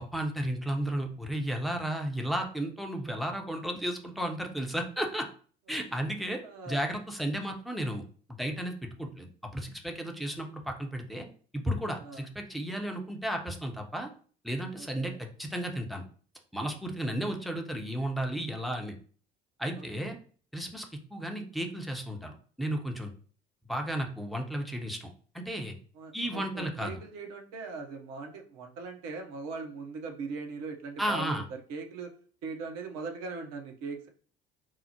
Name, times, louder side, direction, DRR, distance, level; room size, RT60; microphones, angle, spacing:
voice 1, 0.0-5.3 5.7-6.4 6.7-8.0 8.4-11.3 11.5-14.1 14.4-16.0 16.5-19.0 19.6-20.2 20.5-20.9 21.1-23.1 23.7-25.1 25.3-25.7 26.1-26.9 31.0-31.4, right 1 dB, ahead, 2 dB, 0.6 m, -33 dB
voice 2, 6.4-6.8 12.0-12.2 14.8-15.2 19.8-20.0 26.0-32.1 32.4-34.1, right 4 dB, 60° right, 3 dB, 0.8 m, -40 dB
4.6 x 2.0 x 2.8 m, 0.44 s
figure-of-eight pair, 60°, 30 cm